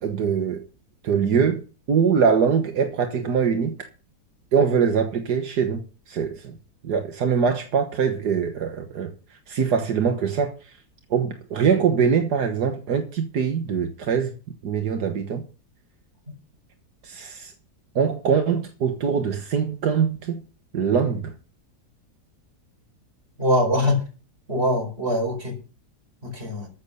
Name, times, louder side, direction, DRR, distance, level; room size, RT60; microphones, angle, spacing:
voice 1, 0.0-0.6 1.0-1.6 1.9-3.7 4.5-5.8 6.1-6.5 6.8-9.1 9.5-10.5 11.1-14.4 14.6-15.4 17.0-17.5 18.0-20.4 20.7-21.3, right 6 dB, 80° right, 2.0 m, -23 dB
voice 2, 23.4-24.0 24.5-25.6 26.2-26.7, equal, 40° right, 5.3 m, -23 dB
13.5 x 7.6 x 6.8 m
omnidirectional pair, 1.7 m